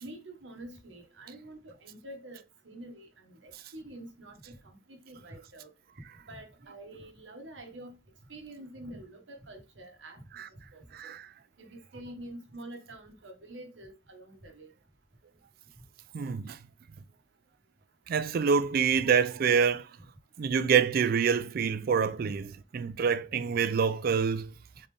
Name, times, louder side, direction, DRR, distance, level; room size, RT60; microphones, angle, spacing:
voice 1, 0.0-5.7 6.3-8.0 8.3-10.2 10.7-11.1 11.6-14.7 22.2-22.3, right 1 dB, 80° right, 1.3 m, -47 dB
voice 2, 16.1-16.6 18.1-19.9 20.4-22.5 22.7-24.5, right 6 dB, 55° right, 0.4 m, -26 dB
4.1 x 3.3 x 3.5 m
head